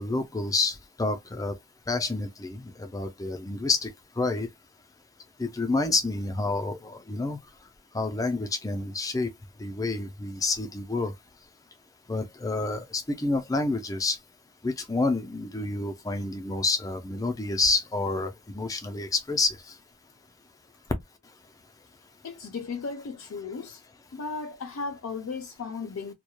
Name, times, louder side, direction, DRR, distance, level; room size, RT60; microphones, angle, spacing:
voice 1, 0.0-1.5 1.9-3.9 4.2-4.5 5.4-7.4 7.9-9.3 9.6-11.1 12.1-14.2 14.6-18.3 18.5-19.5, left 3 dB, 15° left, 0.4 m, -28 dB
voice 2, 22.2-23.8 24.1-26.1, left 4 dB, 80° left, 0.4 m, -35 dB
2.3 x 2.1 x 2.9 m
head